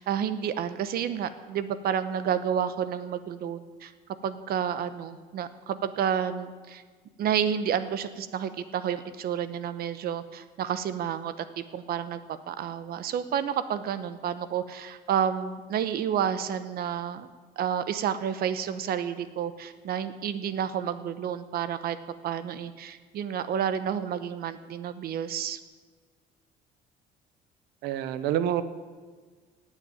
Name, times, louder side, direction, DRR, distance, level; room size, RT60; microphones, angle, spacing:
voice 1, 0.0-3.9 4.2-6.8 7.2-17.3 17.6-22.0 22.2-25.6, right 8 dB, 65° right, 12 dB, 1.0 m, -30 dB
voice 2, 27.8-28.6, right 11 dB, 85° right, 13 dB, 0.9 m, -27 dB
18.0 x 6.6 x 9.3 m, 1.5 s
cardioid pair, 110°, 17 cm